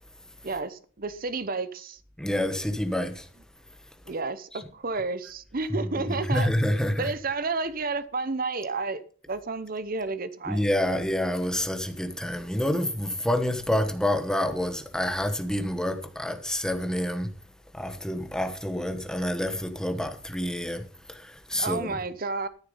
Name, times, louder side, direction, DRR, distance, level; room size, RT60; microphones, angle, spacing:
voice 1, 0.4-2.0 4.1-10.6 21.6-22.5, right 3 dB, 45° right, 0.8 m, -31 dB
voice 2, 2.2-3.3 4.5-4.6 6.1-7.1 10.5-17.3 17.7-22.0, left 1 dB, 5° left, 1.1 m, -28 dB
13.5 x 6.6 x 5.4 m
head